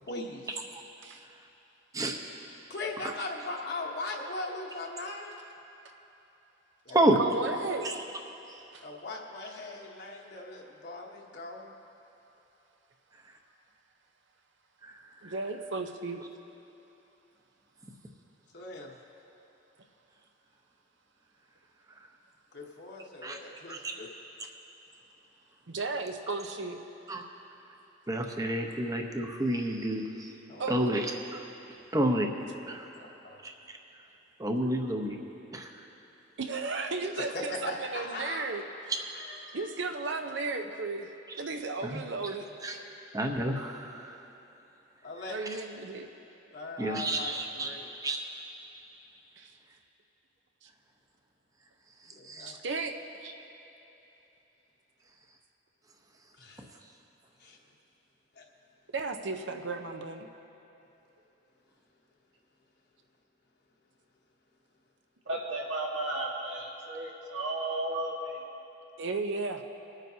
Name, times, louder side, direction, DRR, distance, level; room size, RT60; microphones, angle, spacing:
voice 1, 0.0-0.5 2.7-5.4 6.8-7.0 7.5-7.6 8.8-11.7 18.5-19.0 22.5-24.1 30.5-30.8 33.0-33.4 37.2-38.5 39.1-39.8 45.0-45.4 46.5-47.9 52.1-52.5 56.4-56.7 57.4-57.6 58.3-58.4, left 2 dB, 60° left, -1 dB, 1.1 m, -40 dB
voice 2, 7.1-8.0 8.7-8.8 15.2-16.2 25.7-26.8 30.6-31.0 36.4-38.6 39.5-41.1 41.4-42.5 45.3-46.1 49.4-49.5 52.4-52.9 53.2-53.3 58.9-60.3 69.0-69.6, right 3 dB, 70° right, 5 dB, 0.7 m, -34 dB
voice 3, 28.1-30.3 30.7-31.4 31.9-32.3 32.7-32.9 33.4-33.5 34.4-35.2 35.5-35.7 38.9-39.0 41.8-42.0 42.6-42.8 43.1-44.1 46.8-47.7 48.0-48.2 52.3-52.5, right 1 dB, 20° right, 3 dB, 0.8 m, -29 dB
voice 4, 65.3-68.4, right 2 dB, 90° right, -3 dB, 1.9 m, -34 dB
24.0 x 9.0 x 2.8 m, 3.0 s
head